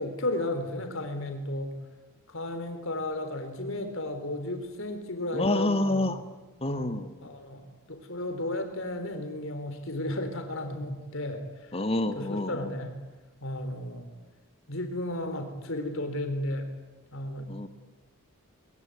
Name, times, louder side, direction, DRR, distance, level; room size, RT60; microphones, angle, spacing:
voice 1, 0.0-1.7 2.3-6.1 7.2-11.4 12.1-13.0 13.4-14.1 14.7-16.7 17.1-17.5, left 1 dB, 60° left, 6 dB, 4.0 m, -33 dB
voice 2, 5.3-6.2 6.6-7.2 11.7-12.7 17.5-17.7, left 1 dB, 25° left, 10 dB, 1.6 m, -28 dB
23.5 x 22.5 x 9.7 m, 1.2 s
head